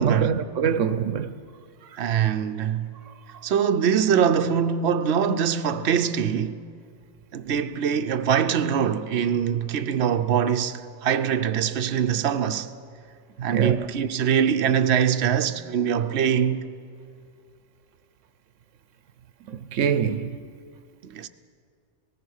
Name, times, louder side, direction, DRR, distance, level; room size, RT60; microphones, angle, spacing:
voice 1, 0.0-1.3 13.4-13.8 19.5-20.4, right 7 dB, 90° right, 1.2 m, -24 dB
voice 2, 2.0-2.9 3.4-6.6 7.3-12.7 13.4-16.7 21.0-21.3, right 8 dB, 65° right, 1.0 m, -23 dB
27.0 x 18.5 x 6.4 m
omnidirectional pair, 1.2 m